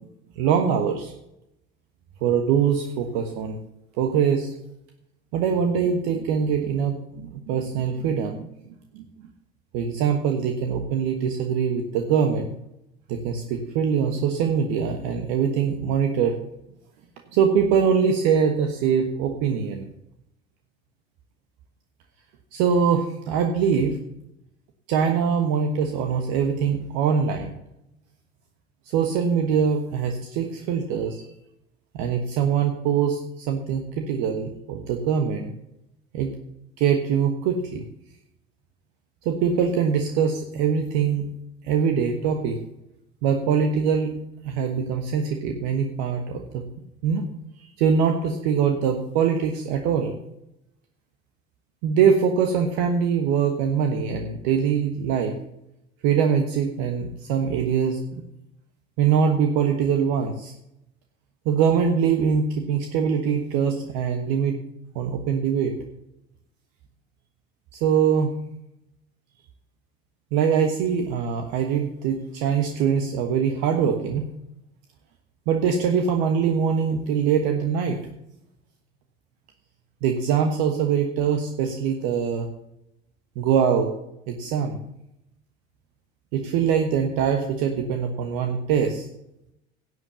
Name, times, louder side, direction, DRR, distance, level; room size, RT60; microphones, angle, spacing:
voice 1, 0.4-1.1 2.2-3.6 4.0-4.5 5.3-8.4 8.9-9.0 9.7-12.5 13.1-16.3 17.3-19.8 22.5-24.0 24.9-27.5 28.9-31.2 31.9-35.5 36.1-36.4 36.8-37.8 39.2-41.3 41.6-42.6 43.2-44.1 44.4-46.6 47.0-47.2 47.6-50.1 51.8-55.3 56.0-58.2 59.0-60.5 61.4-64.6 64.9-65.7 67.7-68.3 70.3-74.2 75.5-78.0 80.0-82.5 83.3-83.9 84.3-84.8 86.3-89.1, right 7 dB, 65° right, 4 dB, 1.3 m, -23 dB
11.0 x 7.9 x 6.8 m, 0.83 s
hypercardioid pair, 70°, 30 cm